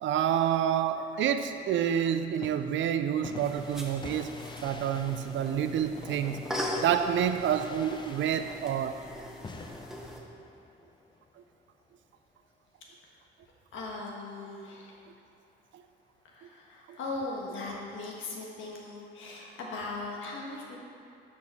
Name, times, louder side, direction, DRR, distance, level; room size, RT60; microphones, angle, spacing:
voice 1, 0.0-6.5 6.8-9.0 15.7-15.8 16.9-17.0, right 9 dB, 75° right, 9 dB, 0.5 m, -28 dB
sound 1, 2.4-11.6 17.1-17.5, left 4 dB, 25° left, 0.5 m, -47 dB
sound 2, 3.4-10.2, equal, ahead, 1.1 m, -40 dB
voice 2, 9.1-9.7 13.7-15.0 16.3-20.8, left 2 dB, 80° left, -2 dB, 1.4 m, -39 dB
12.0 x 4.7 x 4.2 m, 2.5 s
cardioid pair, 90°, 20 cm